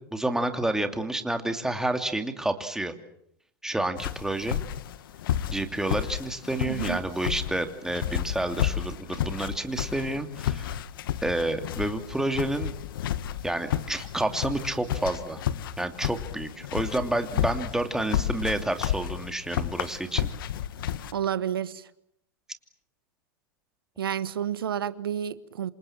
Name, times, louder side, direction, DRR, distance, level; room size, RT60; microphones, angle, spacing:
voice 1, 0.0-2.9 3.6-4.6 5.5-10.8 11.2-12.7 13.4-15.4 15.8-20.3, right 1 dB, 5° right, 2.8 m, -29 dB
sound 1, 4.0-21.1, left 11 dB, 75° left, 1.5 m, -32 dB
voice 2, 6.6-7.0 21.1-21.9 24.0-25.7, right 9 dB, 90° right, 1.2 m, -30 dB
27.5 x 27.0 x 7.4 m
hypercardioid pair, 110°, 12 cm